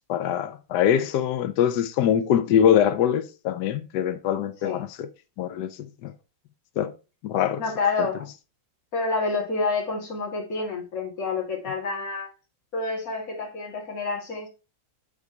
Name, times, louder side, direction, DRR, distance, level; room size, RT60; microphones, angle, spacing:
voice 1, 0.1-5.1 5.4-6.1 6.8-6.9 7.2-7.6, left 9 dB, 70° left, 1.2 m, -23 dB
voice 2, 7.6-8.3 8.9-12.3 12.7-14.5, left 4 dB, 45° left, 2.7 m, -28 dB
8.2 x 4.1 x 4.6 m
omnidirectional pair, 2.1 m